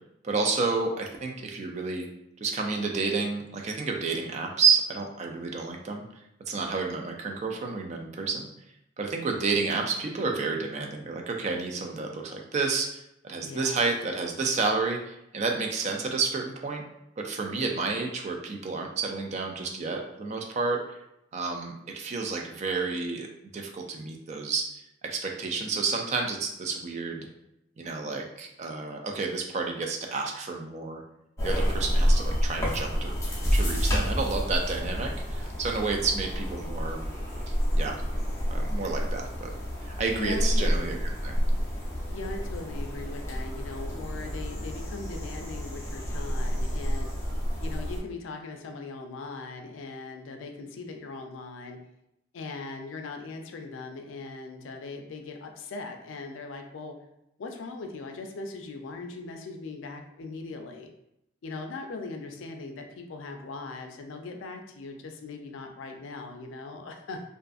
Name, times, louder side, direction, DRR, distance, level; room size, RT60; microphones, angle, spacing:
voice 1, 0.2-2.1 2.4-6.1 6.5-8.5 9.0-12.9 13.2-16.8 17.2-20.8 21.3-23.3 23.5-24.7 25.0-27.3 27.8-31.0 31.4-37.0 37.7-38.0 38.5-39.5 40.0-41.0 41.2-41.4, right 4 dB, 35° right, 2 dB, 0.3 m, -30 dB
voice 2, 13.4-13.9 40.2-41.0 42.1-47.1 47.6-51.8 52.3-56.9 57.4-60.9 61.4-67.2, left 3 dB, 80° left, 4 dB, 0.4 m, -39 dB
sound 1, 31.4-48.0, equal, 15° left, 0.6 m, -29 dB
2.5 x 2.4 x 2.3 m, 0.82 s
head